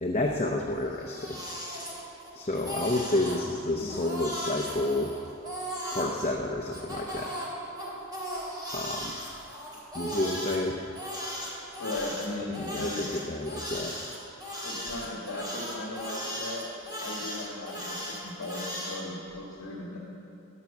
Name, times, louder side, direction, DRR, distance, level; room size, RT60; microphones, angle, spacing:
voice 1, 0.0-1.4 2.3-5.1 5.9-7.3 8.7-9.2 9.9-10.8 12.6-14.1, left 2 dB, 30° left, 0 dB, 0.7 m, -30 dB
Crying sobbing, 0.8-2.3 2.5-3.4 3.9-6.1 6.7-10.6 11.0-19.0, equal, 20° right, 2.9 m, -37 dB
voice 2, 11.8-13.0 14.6-16.6 17.0-20.0, left 2 dB, 65° left, -4 dB, 1.8 m, -37 dB
13.5 x 10.5 x 7.2 m, 2.7 s
head